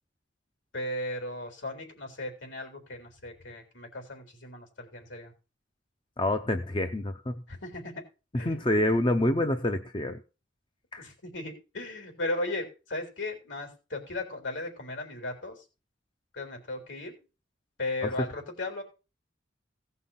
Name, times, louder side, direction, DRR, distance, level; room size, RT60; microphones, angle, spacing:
voice 1, 0.7-5.3 7.5-8.0 8.4-8.7 11.0-15.6 16.3-17.2 17.8-18.8, left 2 dB, 75° left, 4 dB, 3.8 m, -36 dB
voice 2, 6.2-7.4 8.3-10.2 10.9-11.1, left 1 dB, 25° left, 7 dB, 0.7 m, -27 dB
17.0 x 5.6 x 5.7 m, 0.33 s
head